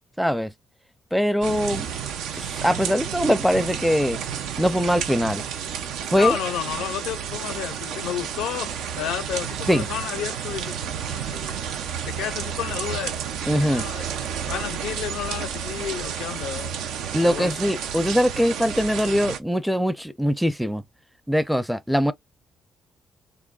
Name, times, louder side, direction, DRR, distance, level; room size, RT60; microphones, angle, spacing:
voice 1, 0.2-0.5 1.1-1.9 2.3-4.2 4.6-5.4 6.1-6.4 9.7-9.9 13.5-13.8 17.1-20.8 21.3-22.1, equal, ahead, 0.4 m, -22 dB
sound 1, 1.4-19.4, right 8 dB, 90° right, 0.5 m, -31 dB
voice 2, 6.2-10.8 11.1-11.6 12.1-13.1 13.5-14.1 14.5-16.7 17.2-17.6, left 10 dB, 90° left, 0.4 m, -31 dB
3.5 x 2.1 x 2.4 m
cardioid pair, 90°, 0 cm